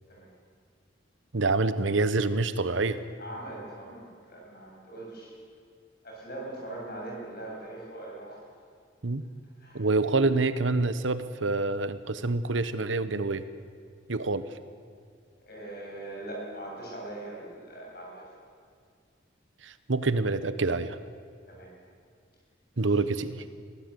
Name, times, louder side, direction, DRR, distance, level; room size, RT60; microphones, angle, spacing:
voice 1, 1.3-3.0 9.0-9.2 9.7-13.4 14.1-14.6 19.6-21.0 22.8-23.4, right 3 dB, 80° right, 13 dB, 1.0 m, -27 dB
voice 2, 3.2-5.3 6.0-8.5 9.6-9.9 15.5-18.3 21.4-21.7 22.7-22.9, right 1 dB, 50° left, -2 dB, 7.9 m, -41 dB
23.0 x 16.0 x 8.3 m, 2.1 s
head